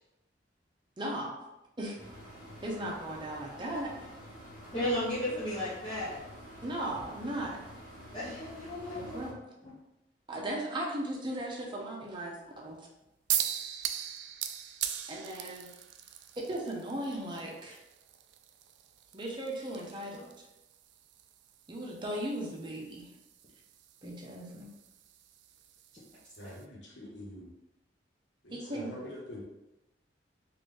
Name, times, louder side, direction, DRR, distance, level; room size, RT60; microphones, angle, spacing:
voice 1, 1.0-1.3 1.8-2.0 2.6-3.9 6.6-7.6 8.9-9.3 10.3-12.8 15.1-15.7 16.5-17.8 19.1-20.3 21.7-23.1 24.0-24.7 28.5-28.9, right 1 dB, 25° right, -2 dB, 0.7 m, -37 dB
sound 1, 2.0-9.3, equal, 10° right, 1.1 m, -49 dB
voice 2, 4.7-6.2 8.1-9.2 26.4-26.5, left 1 dB, 25° left, -10 dB, 0.8 m, -34 dB
sound 2, 13.3-26.6, right 10 dB, 70° right, 0.3 m, -40 dB
voice 3, 26.4-27.5 28.4-29.4, left 1 dB, 70° left, -3 dB, 1.1 m, -45 dB
3.9 x 2.6 x 3.2 m, 0.92 s
head